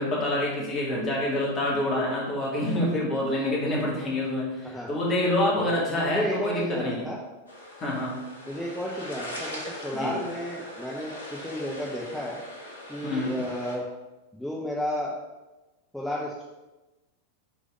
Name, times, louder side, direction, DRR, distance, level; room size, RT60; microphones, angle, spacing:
voice 1, 0.0-7.0 7.8-8.2 9.9-10.1 13.0-13.3, left 1 dB, 30° left, -4 dB, 2.3 m, -27 dB
voice 2, 5.5-7.2 8.5-12.4 12.9-13.9 14.3-15.1 15.9-16.4, equal, ahead, -4 dB, 0.8 m, -32 dB
sound 1, 7.5-13.8, left 1 dB, 70° left, 1.3 m, -41 dB
6.0 x 4.0 x 5.0 m, 1.1 s
figure-of-eight pair, 90°, 0 cm